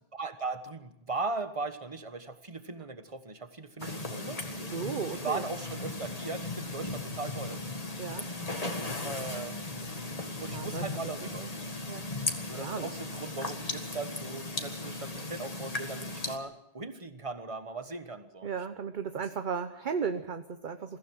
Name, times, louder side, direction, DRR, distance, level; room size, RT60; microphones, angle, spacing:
voice 1, 0.1-4.4 5.1-7.6 9.0-9.6 10.4-11.5 12.5-18.5, right 3 dB, 30° right, 9 dB, 1.4 m, -38 dB
sound 1, 3.8-16.4, left 2 dB, 35° left, 1.9 m, -37 dB
voice 2, 4.7-5.4 8.0-8.3 8.6-8.8 9.3-9.4 10.5-10.8 11.4-11.5 11.9-12.1 12.6-12.9 18.4-21.0, right 6 dB, 50° right, 9 dB, 1.0 m, -35 dB
22.0 x 15.5 x 7.8 m, 0.81 s
omnidirectional pair, 1.1 m